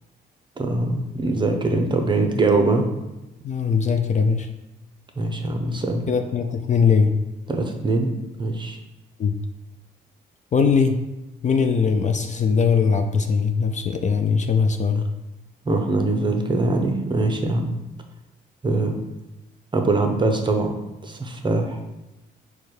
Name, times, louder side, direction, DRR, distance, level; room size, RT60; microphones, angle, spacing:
voice 1, 0.6-2.8 5.2-6.1 7.5-8.1 8.4-8.8 15.7-17.7 18.6-19.0 19.7-20.8 21.0-21.8, right 2 dB, 25° right, 4 dB, 0.7 m, -22 dB
voice 2, 3.4-4.5 6.1-7.1 9.2-9.4 10.5-11.0 11.4-15.1, left 5 dB, 40° left, 6 dB, 0.4 m, -20 dB
4.8 x 2.3 x 4.4 m, 0.98 s
cardioid pair, 90°, 20 cm